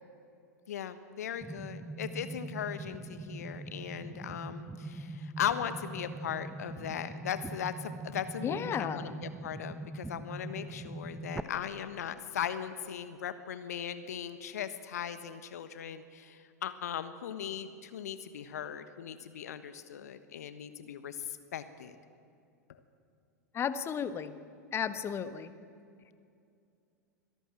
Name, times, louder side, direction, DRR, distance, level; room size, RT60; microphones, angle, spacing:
voice 1, 0.7-22.0 22.7-22.8, left 9 dB, 65° left, 12 dB, 1.3 m, -38 dB
sound 1, 1.4-11.4, right 2 dB, 5° right, 1.0 m, -42 dB
voice 2, 8.4-9.1 23.5-24.3 24.7-25.5, left 7 dB, 25° left, 12 dB, 1.3 m, -34 dB
25.0 x 18.0 x 7.7 m, 2.5 s
figure-of-eight pair, 90°, 9 cm